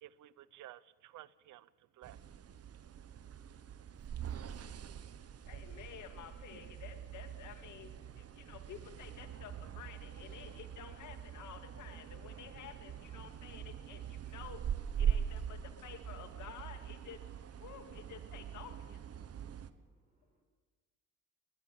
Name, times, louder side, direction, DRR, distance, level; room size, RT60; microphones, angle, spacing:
voice 1, 0.0-2.2, right 14 dB, 80° right, 19 dB, 0.7 m, -54 dB
sound 1, 2.0-19.7, right 9 dB, 55° right, 1.3 m, -42 dB
voice 2, 5.5-14.6 15.0-17.2 17.6-19.0, left 9 dB, 75° left, 7 dB, 2.3 m, -51 dB
voice 3, 19.2-20.4, right 1 dB, 25° right, -1 dB, 6.9 m, -79 dB
20.5 x 19.5 x 8.5 m, 1.3 s
cardioid pair, 90°, 30 cm